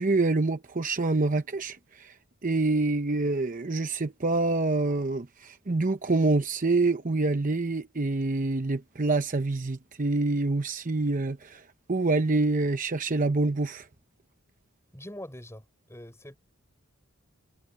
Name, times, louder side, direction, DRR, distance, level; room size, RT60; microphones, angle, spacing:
voice 1, 0.0-2.1 2.4-11.6 11.9-13.9, right 3 dB, 40° right, 0.8 m, -26 dB
voice 2, 14.9-16.4, left 1 dB, 15° left, 7.0 m, -43 dB
head